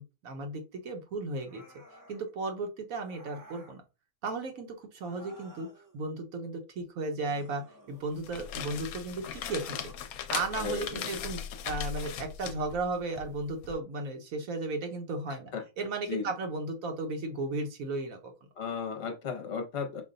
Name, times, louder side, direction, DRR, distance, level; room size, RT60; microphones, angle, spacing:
voice 1, 0.0-1.6 2.1-3.8 4.2-4.7 4.9-5.7 5.9-7.6 7.9-9.8 10.3-18.3, right 3 dB, 65° right, 4 dB, 1.2 m, -35 dB
sound 1, 1.4-2.3 3.0-3.8 4.9-6.0 7.2-8.4 9.1-10.1 10.8-11.8, right 1 dB, 20° right, 0.6 m, -53 dB
sound 2, 8.1-13.7, left 9 dB, 75° left, 1.0 m, -39 dB
voice 2, 10.6-11.1 15.5-15.6 16.1-16.3 18.6-20.0, left 6 dB, 50° left, 4 dB, 1.0 m, -35 dB
5.2 x 2.2 x 3.8 m, 0.29 s
omnidirectional pair, 1.6 m